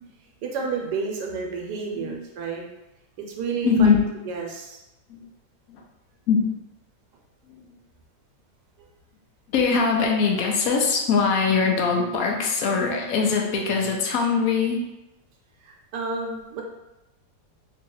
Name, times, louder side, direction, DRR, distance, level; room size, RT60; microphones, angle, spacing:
voice 1, 0.4-2.6 3.4-4.8 15.6-16.6, right 4 dB, 80° right, 1 dB, 1.2 m, -31 dB
voice 2, 3.4-4.0 5.1-5.3 5.7-5.8 6.3-6.5 7.5-7.7 9.5-14.9, left 5 dB, 65° left, 1 dB, 0.9 m, -22 dB
2.9 x 2.8 x 3.8 m, 0.94 s
omnidirectional pair, 1.8 m